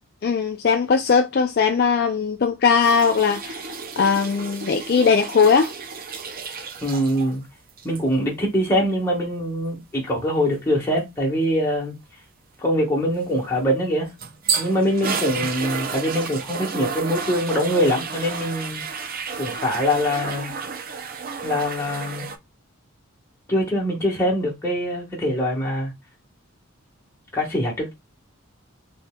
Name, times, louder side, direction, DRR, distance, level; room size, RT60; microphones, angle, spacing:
voice 1, 0.2-3.7 4.0-5.7, left 5 dB, 50° left, 0.4 m, -19 dB
sound 1, 2.8-7.4 7.7-8.0 13.8-22.4, right 5 dB, 45° right, 0.5 m, -31 dB
voice 2, 6.8-7.4 7.8-11.9 12.6-14.1 14.5-18.8 19.4-20.5 21.4-22.3 23.5-25.9 27.3-27.9, equal, 10° left, 1.3 m, -23 dB
4.1 x 3.5 x 2.2 m
head